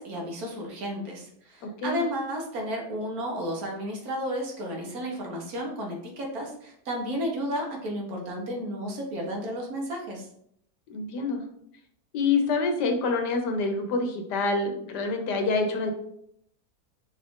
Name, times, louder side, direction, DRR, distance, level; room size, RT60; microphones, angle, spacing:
voice 1, 0.0-10.3, equal, 65° right, 0 dB, 1.4 m, -32 dB
voice 2, 10.9-11.4 12.1-15.9, left 3 dB, 90° left, 4 dB, 1.4 m, -26 dB
4.8 x 2.5 x 3.5 m, 0.70 s
omnidirectional pair, 1.7 m